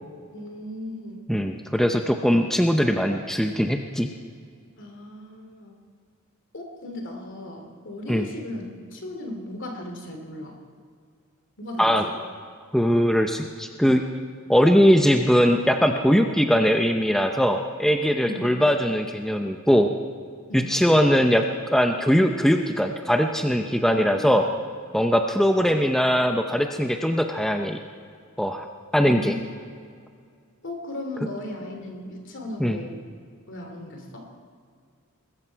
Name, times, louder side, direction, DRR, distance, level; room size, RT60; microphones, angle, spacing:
voice 1, 0.3-1.2 4.8-5.7 6.5-8.7 8.9-10.6 11.6-11.9 18.2-18.5 20.5-20.7 23.9-24.4 29.0-29.4 30.6-33.0 33.5-34.3, left 1 dB, 60° left, 2 dB, 2.8 m, -36 dB
voice 2, 1.3-4.1 8.1-8.3 11.8-12.0 12.7-14.0 14.5-19.9 20.5-24.5 24.9-27.8 28.4-28.7 28.9-29.4 32.6-32.8, equal, ahead, 4 dB, 0.6 m, -21 dB
21.5 x 13.5 x 4.6 m, 2.1 s
head